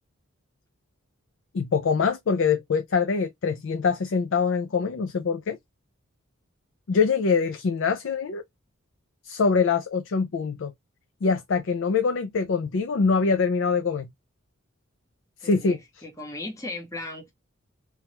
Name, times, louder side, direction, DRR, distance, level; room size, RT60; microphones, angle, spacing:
voice 1, 1.5-5.6 6.9-8.4 9.2-10.7 11.2-14.1 15.4-15.8, left 5 dB, 60° left, 0.4 m, -24 dB
voice 2, 15.4-17.3, left 2 dB, 15° left, 0.9 m, -37 dB
3.1 x 2.3 x 2.8 m
head